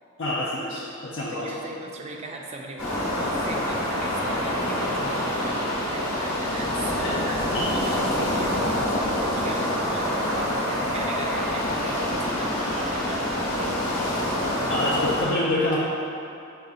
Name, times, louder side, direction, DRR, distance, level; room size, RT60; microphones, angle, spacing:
voice 1, 0.2-1.5 7.0-7.1 7.5-7.6 14.7-15.8, left 1 dB, 55° left, -7 dB, 0.5 m, -26 dB
voice 2, 1.3-14.2, right 2 dB, 30° right, 1 dB, 0.3 m, -38 dB
sound 1, 2.8-15.3, left 1 dB, 80° left, 1.1 m, -26 dB
6.5 x 2.5 x 2.4 m, 2.7 s
head